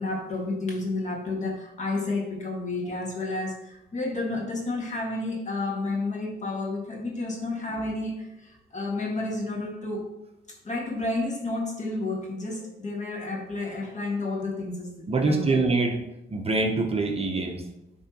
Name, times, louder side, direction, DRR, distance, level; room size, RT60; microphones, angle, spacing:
voice 1, 0.0-10.1 10.5-15.6, left 2 dB, 35° left, 0 dB, 1.7 m, -31 dB
voice 2, 15.1-16.0 16.3-17.6, right 3 dB, 30° right, 2 dB, 0.8 m, -24 dB
9.7 x 3.4 x 2.9 m, 0.87 s
cardioid pair, 90°, 20 cm